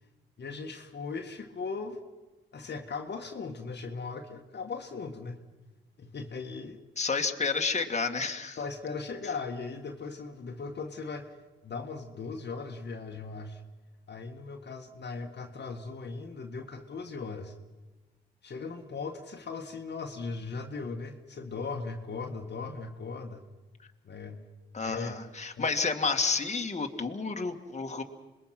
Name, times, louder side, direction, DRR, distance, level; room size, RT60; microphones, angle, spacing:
voice 1, 0.4-2.0 2.5-5.4 6.0-6.8 8.6-11.4 11.6-13.6 14.1-17.5 18.4-23.4 24.0-24.5 24.8-25.2 25.6-25.7, left 4 dB, 55° left, 3 dB, 1.9 m, -38 dB
voice 2, 7.0-8.6 24.7-28.0, left 4 dB, 35° left, 3 dB, 2.1 m, -30 dB
26.5 x 21.0 x 6.1 m, 1.2 s
supercardioid pair, 60°, 21 cm